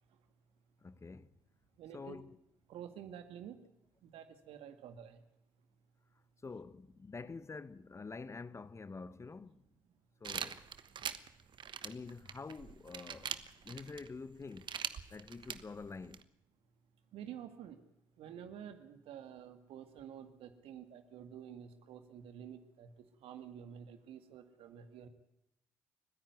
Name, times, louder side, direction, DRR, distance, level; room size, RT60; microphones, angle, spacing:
voice 1, 0.8-1.3 1.9-2.4 6.4-9.6 10.2-10.7 11.8-14.8 15.1-16.2, left 4 dB, 30° left, 0.9 m, -47 dB
voice 2, 1.8-2.2 2.7-3.6 4.0-5.2 17.1-17.8 18.2-22.9 23.2-25.1, right 9 dB, 65° right, 2.1 m, -49 dB
sound 1, 10.2-16.2, right 8 dB, 50° right, 1.2 m, -43 dB
29.5 x 10.5 x 9.5 m
hypercardioid pair, 50°, 10 cm